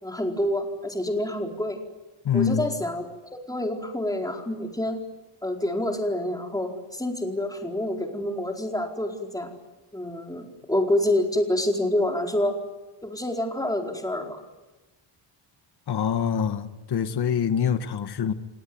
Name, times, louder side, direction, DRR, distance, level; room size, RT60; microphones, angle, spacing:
voice 1, 0.0-1.8 2.3-3.0 3.3-5.0 5.4-9.5 9.9-12.5 13.0-14.4, left 1 dB, 5° left, 4.5 m, -27 dB
voice 2, 2.2-2.7 15.9-18.3, left 7 dB, 50° left, 1.7 m, -25 dB
30.0 x 17.5 x 9.5 m
cardioid pair, 120°, 49 cm